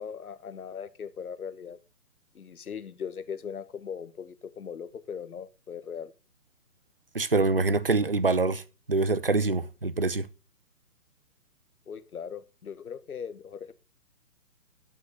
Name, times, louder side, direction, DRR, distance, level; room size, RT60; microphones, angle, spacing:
voice 1, 0.0-1.8 2.3-6.1 11.9-13.7, left 7 dB, 65° left, 1.4 m, -39 dB
voice 2, 7.1-8.6 8.9-10.3, right 3 dB, 40° right, 0.5 m, -25 dB
11.5 x 5.5 x 6.2 m
hypercardioid pair, 175°, 47 cm